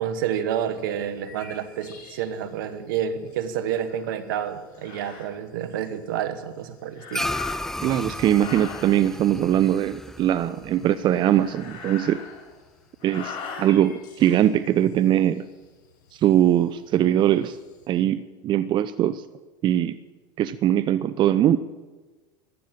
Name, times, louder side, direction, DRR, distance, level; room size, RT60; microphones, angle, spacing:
voice 1, 0.0-7.3, right 9 dB, 80° right, 11 dB, 1.5 m, -29 dB
sound 1, 0.6-17.9, left 4 dB, 75° left, 4.7 m, -55 dB
sound 2, 3.9-4.0 4.8-5.3 6.9-7.9 8.3-8.9 11.1-12.6 13.0-13.7, left 6 dB, 50° left, 4.8 m, -39 dB
sound 3, 7.1-11.8, left 1 dB, 5° left, 0.5 m, -34 dB
voice 2, 7.8-12.2 13.0-15.5 16.1-17.6 17.9-19.2 19.6-20.0 20.4-21.6, right 11 dB, 45° right, 13 dB, 0.6 m, -21 dB
14.5 x 12.0 x 7.6 m, 1.2 s
hypercardioid pair, 90°, 11 cm